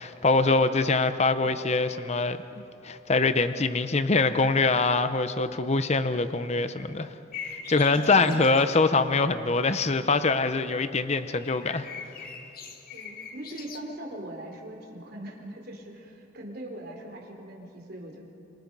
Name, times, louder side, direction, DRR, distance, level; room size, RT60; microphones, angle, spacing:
voice 1, 0.0-2.4 2.8-7.1 7.7-11.8, left 3 dB, 35° left, 11 dB, 0.7 m, -24 dB
voice 2, 1.4-1.7 7.8-8.5 12.9-18.2, right 1 dB, 55° right, 1 dB, 3.8 m, -41 dB
sound 1, 7.3-8.9 11.3-13.8, left 5 dB, 50° left, 1.7 m, -41 dB
28.0 x 26.5 x 5.4 m, 2.8 s
head